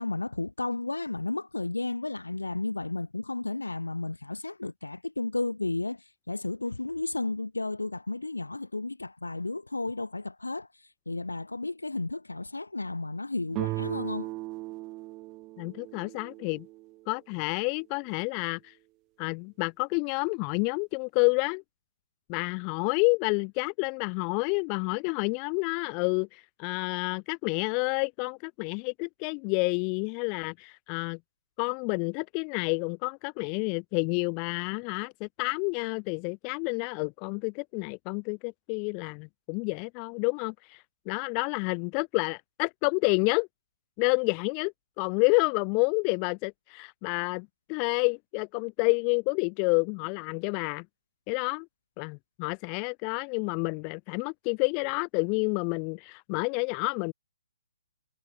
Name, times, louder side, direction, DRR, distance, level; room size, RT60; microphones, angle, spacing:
voice 1, 0.0-6.0 6.3-10.7 11.1-14.3, left 2 dB, 90° left, 2.7 m, -33 dB
sound 1, 13.5-17.1, right 20 dB, 25° right, 1.2 m, -37 dB
voice 2, 15.6-16.7 17.1-18.7 19.2-21.6 22.3-31.2 31.6-43.5 44.0-50.8 51.3-51.7 52.0-57.1, left 39 dB, 30° left, 0.8 m, -29 dB
figure-of-eight pair, 135°, 0 cm